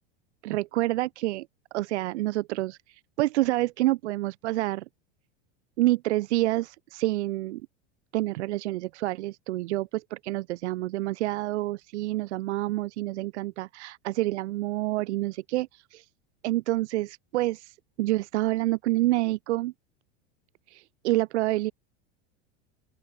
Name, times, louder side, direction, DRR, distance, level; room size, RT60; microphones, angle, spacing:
voice 1, 0.4-1.5 1.7-2.8 3.2-4.8 5.8-7.6 8.1-16.0 16.4-19.7 20.7-21.7, right 17 dB, 80° right, 0.8 m, -28 dB
open air
supercardioid pair, 115°, 34 cm